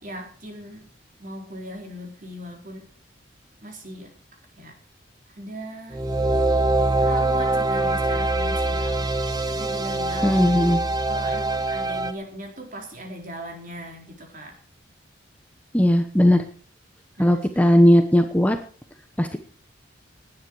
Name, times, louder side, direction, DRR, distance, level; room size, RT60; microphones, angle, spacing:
voice 1, 0.0-0.9 1.2-2.9 3.6-4.2 4.6-4.8 5.3-6.1 7.0-9.1 9.5-10.3 11.1-14.5 17.2-17.4, equal, 45° right, 2 dB, 4.3 m, -38 dB
sound 1, 5.9-12.1, right 2 dB, 20° right, 1.1 m, -23 dB
voice 2, 10.2-10.8 15.7-16.4 17.2-18.6 19.2-19.4, equal, 10° left, 6 dB, 0.9 m, -17 dB
18.5 x 9.7 x 4.8 m, 0.43 s
head